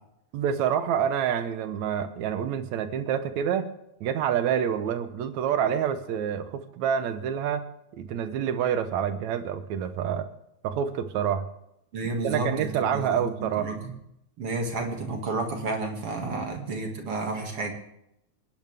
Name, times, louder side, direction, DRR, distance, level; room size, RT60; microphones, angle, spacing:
voice 1, 0.3-3.7 4.0-7.6 7.9-10.3 10.6-11.5 12.2-13.7 16.2-16.5, right 8 dB, 75° right, 10 dB, 2.2 m, -27 dB
voice 2, 11.9-13.9 14.4-17.7, right 2 dB, 50° right, 2 dB, 2.9 m, -31 dB
26.0 x 11.0 x 3.5 m, 0.80 s
omnidirectional pair, 3.4 m